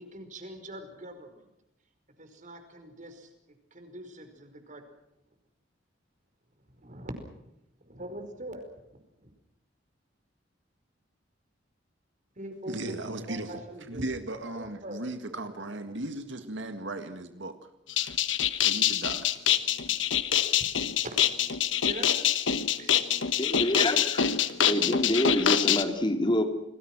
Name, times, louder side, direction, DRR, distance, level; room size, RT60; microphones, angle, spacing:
voice 1, 0.0-1.5 2.2-4.8 6.7-7.1 7.8-8.9 9.2-9.3 12.4-14.1 14.6-15.0 15.3-16.0 20.3-20.7 21.0-21.1 21.8-22.3 22.8-22.9, right 1 dB, 45° right, 7 dB, 5.1 m, -43 dB
voice 2, 12.7-13.6 13.9-17.6 17.9-18.2 18.6-19.4 19.9-20.0, right 2 dB, 75° right, 8 dB, 1.9 m, -37 dB
sound 1, 17.9-25.8, left 9 dB, 80° left, 1.3 m, -25 dB
voice 3, 23.4-24.2 24.5-26.4, left 1 dB, 25° left, 6 dB, 2.5 m, -27 dB
29.0 x 20.0 x 6.2 m, 0.86 s
head